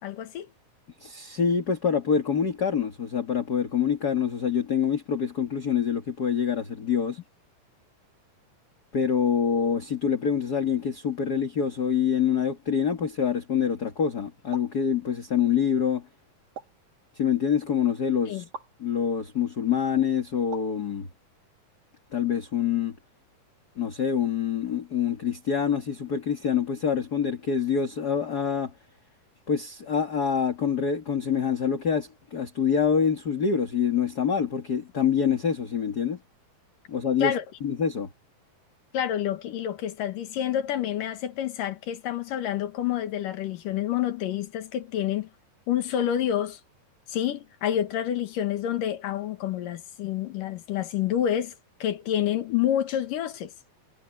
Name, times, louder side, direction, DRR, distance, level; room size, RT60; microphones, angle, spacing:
voice 1, 0.0-0.5 18.3-18.4 37.2-37.4 38.9-45.3 45.7-46.6 47.1-51.5 51.8-53.5, left 11 dB, 75° left, 3.1 m, -28 dB
voice 2, 1.0-7.2 8.9-16.0 17.2-18.4 18.8-21.1 22.1-23.0 23.8-28.7 29.5-36.2 36.9-37.3 37.6-38.1, left 7 dB, 35° left, 2.0 m, -26 dB
sound 1, 14.5-14.8 16.6-16.9 18.5-18.8 20.5-20.8, right 5 dB, 85° right, 6.2 m, -41 dB
omnidirectional pair, 3.9 m